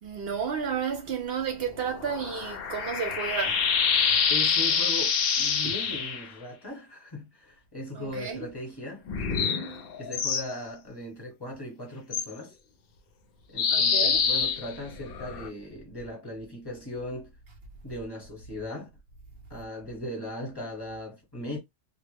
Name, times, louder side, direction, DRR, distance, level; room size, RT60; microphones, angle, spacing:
voice 1, 0.0-3.7 5.6-5.7 8.0-8.5 13.7-14.3, right 7 dB, 65° right, 0.8 m, -32 dB
sound 1, 1.8-6.3 9.1-10.5 12.1-12.2 13.6-15.5, left 6 dB, 65° left, 0.7 m, -26 dB
voice 2, 4.3-12.6 13.5-17.3 17.8-18.9 19.5-21.6, left 1 dB, 20° left, 1.0 m, -38 dB
2.2 x 2.0 x 3.2 m
omnidirectional pair, 1.2 m